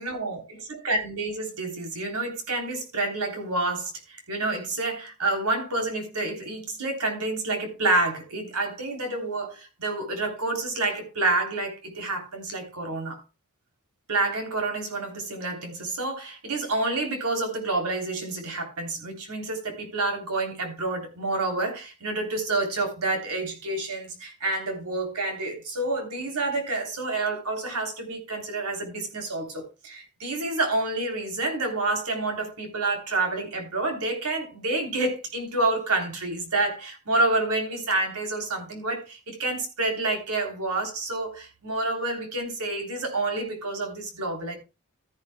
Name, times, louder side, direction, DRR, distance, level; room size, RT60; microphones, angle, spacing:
voice 1, 0.0-13.2 14.1-44.6, right 2 dB, 80° right, 3.4 m, -28 dB
13.5 x 10.5 x 2.2 m
head